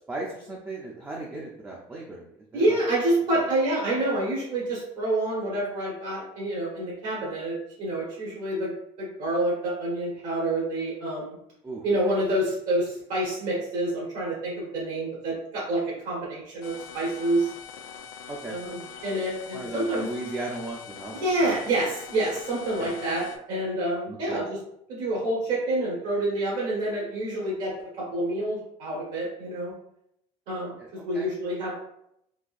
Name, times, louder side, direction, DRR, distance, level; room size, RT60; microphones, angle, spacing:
voice 1, 0.1-2.2 2.5-2.8 11.6-11.8 18.3-18.6 19.5-21.5 22.8-22.9 24.1-24.4 30.8-31.3, right 2 dB, 15° right, -3 dB, 0.4 m, -36 dB
voice 2, 2.5-8.7 9.0-11.3 11.8-17.5 18.5-20.0 21.2-24.6 24.9-27.7 28.0-29.7 30.5-30.7 31.0-31.8, right 1 dB, 65° right, -5 dB, 1.3 m, -27 dB
sound 1, 16.6-23.4, left 7 dB, 85° left, 0.4 m, -43 dB
3.9 x 2.6 x 2.5 m, 0.76 s
cardioid pair, 170°, 15 cm